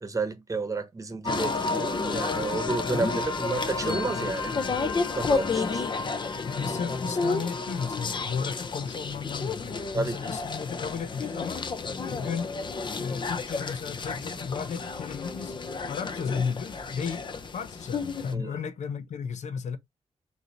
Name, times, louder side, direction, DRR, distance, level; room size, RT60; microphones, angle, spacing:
voice 1, 0.0-4.6 5.1-5.9 9.9-10.3 18.3-18.5, right 3 dB, 30° right, 1.0 m, -31 dB
sound 1, 1.2-18.3, left 4 dB, 40° left, 0.6 m, -31 dB
voice 2, 6.4-11.6 12.1-12.5 13.0-15.5 15.9-19.8, left 6 dB, 80° left, 0.7 m, -34 dB
4.7 x 2.7 x 3.8 m
wide cardioid pair, 135°, 12 cm